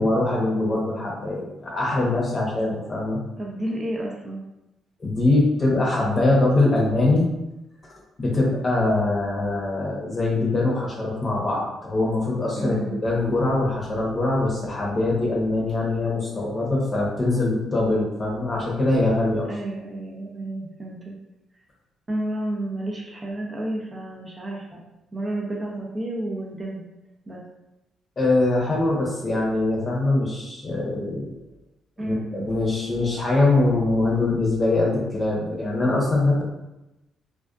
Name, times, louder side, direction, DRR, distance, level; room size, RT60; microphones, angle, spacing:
voice 1, 0.0-3.2 5.0-7.3 8.2-12.8 13.0-19.5 28.2-31.3 32.0-36.4, left 2 dB, 30° left, -3 dB, 0.8 m, -22 dB
voice 2, 3.4-4.4 12.6-13.0 19.5-21.1 22.1-24.8 25.1-26.8 27.3-27.4 32.0-32.5, right 1 dB, 25° right, -2 dB, 0.5 m, -31 dB
2.5 x 2.2 x 2.3 m, 0.94 s
cardioid pair, 90°, 0 cm